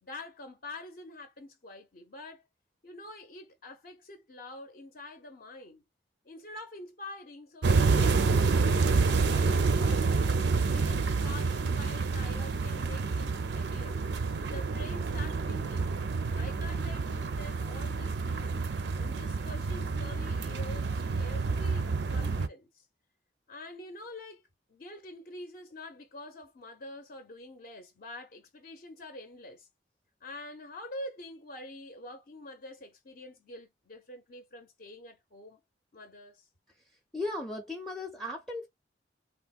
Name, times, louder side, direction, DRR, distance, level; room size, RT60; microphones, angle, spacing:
voice 1, 0.0-2.4 2.8-5.8 6.2-10.3 10.7-14.0 14.5-15.9 16.3-18.6 19.0-22.8 23.5-24.4 24.7-29.7 30.2-35.6 35.9-36.5, left 1 dB, 50° left, 0.6 m, -46 dB
sound 1, 7.6-22.5, right 4 dB, 65° right, 0.4 m, -28 dB
voice 2, 36.8-38.7, left 2 dB, ahead, 0.5 m, -37 dB
3.5 x 2.1 x 2.3 m
head